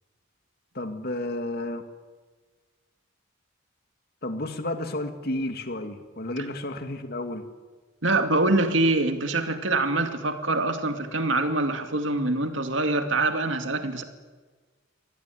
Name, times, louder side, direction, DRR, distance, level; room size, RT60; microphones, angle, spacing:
voice 1, 0.7-1.8 4.2-7.5, left 1 dB, 55° left, 7 dB, 2.3 m, -31 dB
voice 2, 8.0-14.0, right 2 dB, 70° right, 6 dB, 2.4 m, -24 dB
25.0 x 20.0 x 9.4 m, 1.4 s
head